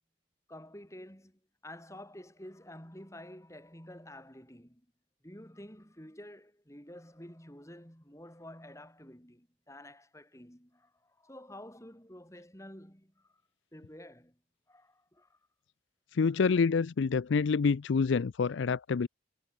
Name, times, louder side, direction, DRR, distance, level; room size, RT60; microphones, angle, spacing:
voice 1, 0.5-4.9 5.2-13.4 13.7-14.4 14.7-15.4 16.2-16.5, left 1 dB, 15° left, 6.5 m, -50 dB
voice 2, 16.1-19.1, left 5 dB, 70° left, 0.4 m, -27 dB
head